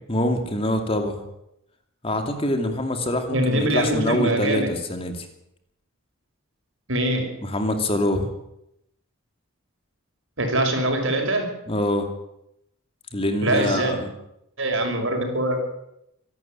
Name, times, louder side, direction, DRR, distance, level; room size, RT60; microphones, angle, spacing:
voice 1, 0.1-1.2 2.0-5.3 7.4-8.3 11.7-12.1 13.1-14.1, left 1 dB, 25° left, 6 dB, 2.5 m, -25 dB
voice 2, 3.3-4.7 6.9-7.3 10.4-11.5 13.4-13.9 14.6-15.6, right 1 dB, 65° right, 4 dB, 5.9 m, -23 dB
25.0 x 12.0 x 8.9 m, 0.82 s
head